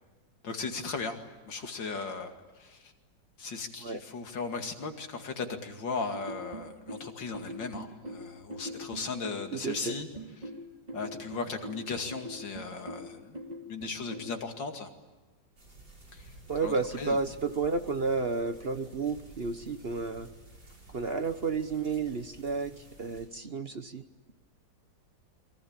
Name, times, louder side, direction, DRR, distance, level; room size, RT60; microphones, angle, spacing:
voice 1, 0.4-1.2 1.4-2.8 3.4-10.1 10.9-13.4 13.7-14.9 16.1-16.3 16.6-17.2, left 4 dB, 90° left, 4 dB, 3.0 m, -37 dB
sound 1, 6.1-14.4, equal, 20° right, 2.9 m, -42 dB
voice 2, 9.5-9.9 16.5-20.3 20.9-24.0, right 4 dB, 40° right, 9 dB, 1.1 m, -31 dB
sound 2, 15.6-23.3, right 1 dB, 80° right, 8.0 m, -52 dB
29.0 x 23.0 x 8.9 m, 1.2 s
omnidirectional pair, 1.9 m